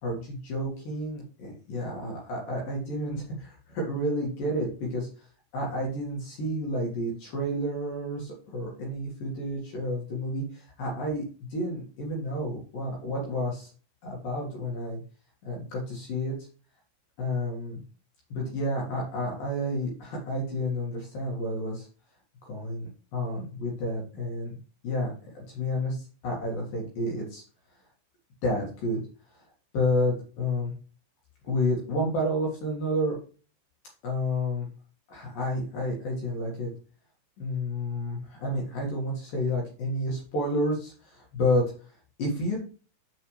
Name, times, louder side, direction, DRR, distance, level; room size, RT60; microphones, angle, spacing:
voice 1, 0.0-5.3 5.5-11.2 11.5-13.7 14.0-15.0 15.4-16.4 17.2-17.8 18.3-21.9 22.5-24.6 24.8-27.4 28.4-29.0 29.7-30.7 31.4-33.2 34.0-34.7 35.1-36.7 37.4-41.7 42.2-42.6, left 1 dB, 55° left, -2 dB, 2.8 m, -30 dB
7.7 x 6.9 x 3.2 m, 0.38 s
omnidirectional pair, 5.8 m